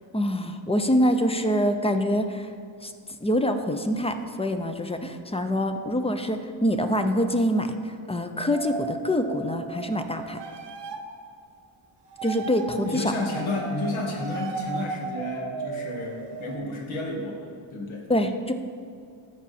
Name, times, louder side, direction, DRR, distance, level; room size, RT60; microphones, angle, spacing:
voice 1, 0.1-2.5 2.8-2.9 3.2-10.4 12.2-13.1 18.1-18.5, equal, 15° left, 7 dB, 0.5 m, -25 dB
sound 1, 8.5-11.2 12.1-16.6, right 4 dB, 55° right, 0.9 m, -36 dB
voice 2, 12.8-18.1, left 2 dB, 75° left, 0 dB, 1.9 m, -31 dB
14.0 x 4.9 x 4.2 m, 2.3 s
cardioid pair, 105°, 49 cm